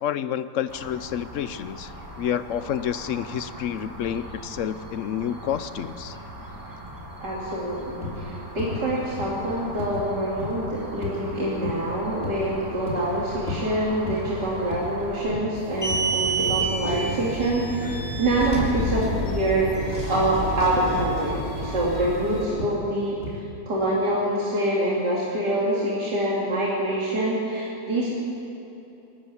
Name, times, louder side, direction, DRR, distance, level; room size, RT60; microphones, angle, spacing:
voice 1, 0.0-6.2, left 9 dB, 60° left, 14 dB, 0.8 m, -29 dB
sound 1, 0.7-15.3, equal, 10° right, 2.0 m, -40 dB
voice 2, 7.2-23.2 23.7-28.1, right 1 dB, 85° right, -6 dB, 3.3 m, -25 dB
sound 2, 8.0-8.2 8.6-8.8 9.2-9.4 9.8-10.0 10.4-10.6 11.0-11.2 11.6-11.9 12.2-12.5 12.9-13.1 13.5-13.6 14.1-14.3 14.7-14.9 15.2-15.5 15.9-16.1 16.5-16.7 17.1-17.3 17.7-17.9 18.3-18.5 18.9-19.1 19.5-19.7 20.1-20.3 20.7-20.9 21.4-21.6 22.0-22.2 22.6-22.8 23.2-23.4, left 3 dB, 40° left, 3.3 m, -35 dB
sound 3, 15.5-22.4, right 1 dB, 25° left, 5.8 m, -29 dB
26.5 x 13.0 x 8.5 m, 3.0 s
omnidirectional pair, 1.8 m